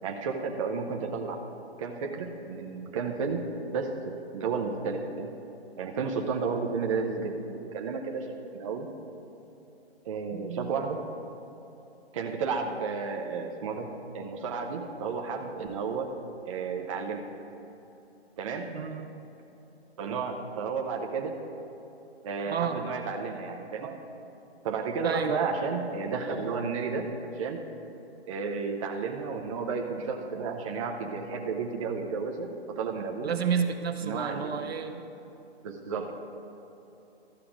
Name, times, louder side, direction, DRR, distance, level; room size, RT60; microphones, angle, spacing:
voice 1, 0.0-1.4 1.8-3.4 3.7-5.3 5.8-8.3 8.5-8.9 10.1-11.0 12.1-16.1 16.5-17.2 18.4-18.7 20.0-21.4 22.2-24.0 24.6-27.6 28.3-32.5 32.8-33.3 34.0-34.7 35.6-36.1, right 5 dB, 30° right, 1 dB, 0.6 m, -32 dB
voice 2, 10.3-10.7 18.7-19.1 22.5-22.8 25.0-25.4 33.2-35.0, right 7 dB, 65° right, 6 dB, 0.9 m, -31 dB
13.5 x 5.7 x 5.1 m, 2.9 s
hypercardioid pair, 145°, 33 cm